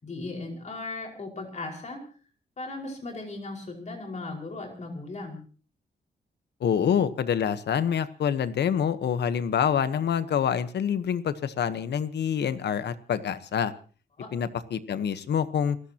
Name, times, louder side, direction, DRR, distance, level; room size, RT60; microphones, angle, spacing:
voice 1, 0.0-2.0 2.6-5.4 14.2-14.3, left 2 dB, 45° left, 1 dB, 5.2 m, -37 dB
voice 2, 6.6-13.7 14.3-15.8, left 8 dB, 80° left, 13 dB, 1.1 m, -26 dB
28.5 x 15.0 x 2.9 m, 0.40 s
wide cardioid pair, 125°, 17 cm